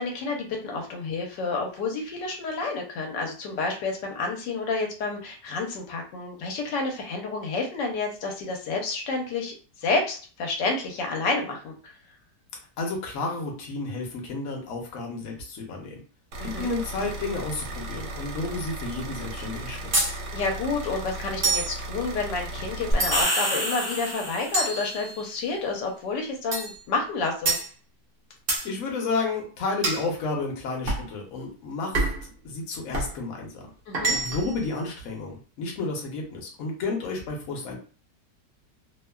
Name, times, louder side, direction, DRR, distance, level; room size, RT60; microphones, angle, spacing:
voice 1, 0.0-11.9 16.4-16.7 20.3-27.6 33.9-34.2, left 3 dB, 85° left, 2 dB, 1.3 m, -29 dB
voice 2, 12.8-16.0 16.4-19.8 28.6-33.6 34.2-37.8, left 3 dB, 55° left, 0 dB, 1.0 m, -31 dB
sound 1, 16.3-23.2, right 1 dB, 75° right, 1.1 m, -36 dB
sound 2, 19.9-20.2 21.4-21.8 23.0-23.4 24.5-25.4 26.5-26.8 27.4-27.7 28.5-28.7 29.8-30.1 30.9-31.1 31.9-32.3 32.9-33.1 33.9-34.5, right 2 dB, 55° right, 0.6 m, -27 dB
sound 3, 22.9-24.8, equal, 35° left, 0.4 m, -27 dB
3.0 x 2.1 x 2.2 m, 0.37 s
omnidirectional pair, 1.9 m